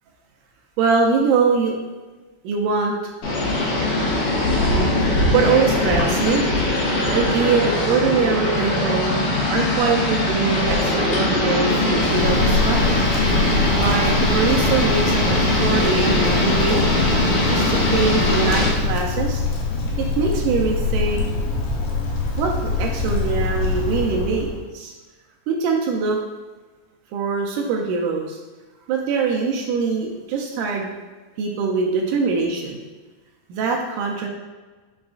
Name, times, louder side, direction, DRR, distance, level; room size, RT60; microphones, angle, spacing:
voice 1, 0.8-1.8 2.4-3.1 4.7-6.4 7.1-9.2 9.5-13.0 13.8-16.8 17.5-19.4 20.0-21.2 22.4-24.9 25.5-26.2 27.1-28.4 28.9-30.9 31.4-32.8 33.5-34.3, right 5 dB, 85° right, 0 dB, 1.8 m, -23 dB
sound 1, 3.2-18.7, left 1 dB, 70° left, 2.5 m, -21 dB
Wind, 11.8-24.6, left 3 dB, 90° left, 2.7 m, -24 dB
5.8 x 2.4 x 3.7 m, 1.3 s
omnidirectional pair, 4.2 m